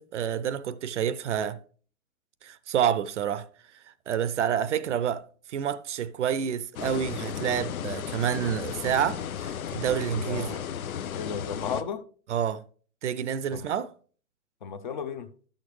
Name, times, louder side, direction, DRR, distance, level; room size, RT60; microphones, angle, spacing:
voice 1, 0.0-1.6 2.4-3.5 4.1-5.2 5.5-10.6 12.3-12.6 13.0-13.9, right 9 dB, 60° right, 0.6 m, -28 dB
sound 1, 6.7-11.8, left 8 dB, 90° left, 0.7 m, -34 dB
voice 2, 10.2-10.7 11.1-12.0 13.5-13.7 14.6-15.3, left 6 dB, 35° left, 0.5 m, -34 dB
11.5 x 6.5 x 3.2 m
hypercardioid pair, 155°, 41 cm